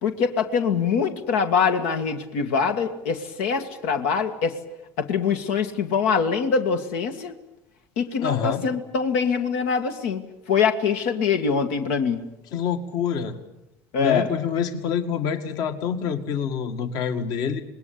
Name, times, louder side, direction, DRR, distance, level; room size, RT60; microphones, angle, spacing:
voice 1, 0.0-4.6 5.0-7.3 8.0-10.2 10.5-12.2 13.9-14.3, left 6 dB, 90° left, 6 dB, 2.1 m, -23 dB
voice 2, 8.2-8.6 12.5-13.4 14.0-17.6, left 7 dB, 60° left, 7 dB, 2.0 m, -26 dB
26.5 x 20.5 x 8.6 m, 0.90 s
cardioid pair, 125°, 7 cm